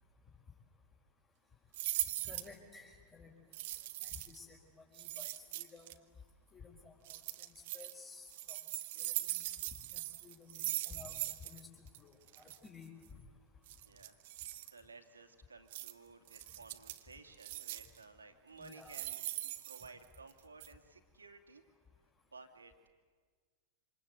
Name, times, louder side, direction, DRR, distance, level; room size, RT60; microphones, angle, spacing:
sound 1, 1.7-2.5 3.5-4.4 4.9-5.9 7.0-7.9 8.3-11.6 11.9-12.0 12.3-12.6 13.7-14.7 15.7-15.9 16.3-17.0 17.4-18.0 18.6-20.3 20.6-20.7, right 16 dB, 50° right, 1.3 m, -41 dB
voice 1, 2.2-3.3 4.0-4.6 4.9-5.9 6.5-8.6 9.0-9.4 9.9-10.6 10.8-11.7 12.0-12.9 18.6-19.0, left 4 dB, 20° left, -4 dB, 4.3 m, -54 dB
voice 2, 13.7-21.6 22.3-22.9, right 4 dB, 75° right, 6 dB, 2.5 m, -56 dB
27.5 x 26.0 x 8.1 m, 1.5 s
figure-of-eight pair, 90°, 0 cm